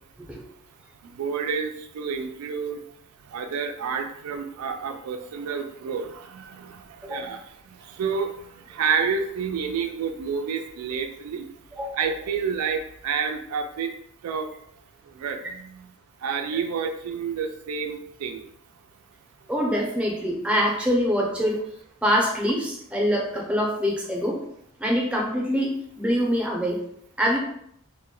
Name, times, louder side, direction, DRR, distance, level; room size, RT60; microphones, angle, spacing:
voice 1, 1.0-2.8 3.2-11.5 11.9-13.9 14.2-14.5 15.0-15.9 16.2-18.5, right 6 dB, 85° right, 5 dB, 0.3 m, -29 dB
voice 2, 7.0-7.4 11.7-12.0 19.5-21.6 22.0-24.4 24.8-26.8 27.2-27.4, equal, 5° right, -2 dB, 0.5 m, -24 dB
2.1 x 2.1 x 3.6 m, 0.71 s
head